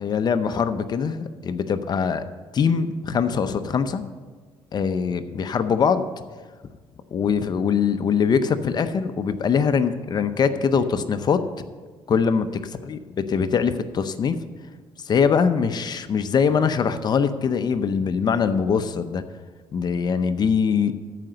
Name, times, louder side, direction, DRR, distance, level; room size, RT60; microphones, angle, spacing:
voice 1, 0.0-2.2 2.5-4.0 4.7-6.0 7.1-11.4 12.1-12.6 12.9-13.0 13.3-14.4 15.0-19.2 19.7-20.9, left 6 dB, 45° left, 10 dB, 0.7 m, -22 dB
13.5 x 5.1 x 7.7 m, 1.4 s
cardioid pair, 110°, 10 cm